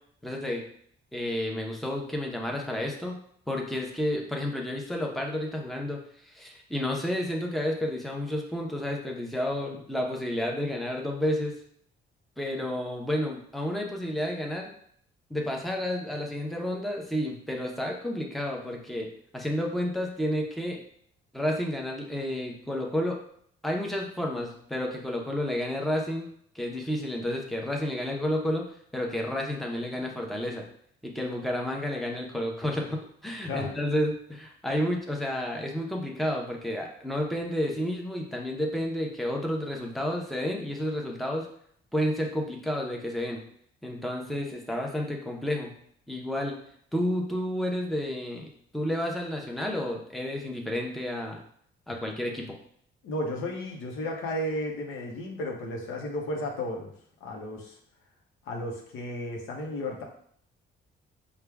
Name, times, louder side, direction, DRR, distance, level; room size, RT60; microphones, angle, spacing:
voice 1, 0.2-0.6 1.1-3.2 3.5-11.5 12.4-14.7 15.3-20.8 21.3-23.2 23.6-26.3 26.5-28.7 28.9-30.6 31.0-41.5 41.9-43.4 43.8-45.7 46.1-46.6 46.9-51.4 51.9-52.6, left 1 dB, ahead, 0 dB, 0.8 m, -31 dB
voice 2, 53.0-56.9 57.2-57.8 58.4-60.0, left 1 dB, 85° left, 0 dB, 0.9 m, -33 dB
4.8 x 2.3 x 3.4 m, 0.64 s
cardioid pair, 90°, 20 cm